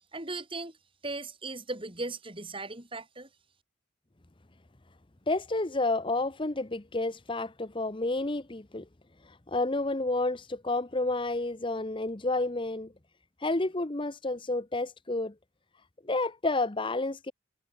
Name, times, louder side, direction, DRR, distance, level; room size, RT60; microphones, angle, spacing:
voice 1, 0.1-0.8 1.0-3.3, right 2 dB, 25° right, 5.4 m, -37 dB
voice 2, 5.3-8.8 9.3-12.9 13.4-15.3 16.0-17.3, left 2 dB, 25° left, 0.9 m, -30 dB
head